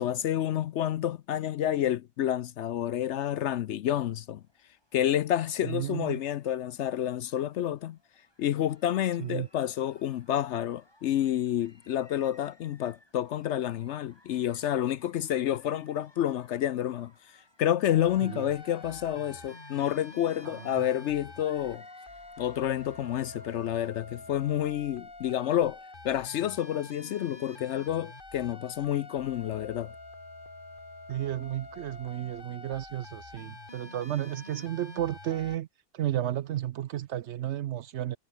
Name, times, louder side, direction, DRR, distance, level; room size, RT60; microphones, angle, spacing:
voice 1, 0.0-4.4 4.9-8.0 8.4-21.8 22.4-25.8 26.0-29.9, left 11 dB, 65° left, 0.8 m, -29 dB
sound 1, 4.0-23.9, left 1 dB, 15° left, 4.3 m, -62 dB
voice 2, 5.6-6.2 9.2-9.5 18.2-18.4 20.4-20.9 31.1-35.7 35.9-38.2, right 12 dB, 65° right, 0.7 m, -33 dB
sound 2, 17.9-35.5, left 2 dB, 35° left, 3.5 m, -47 dB
omnidirectional pair, 1.4 m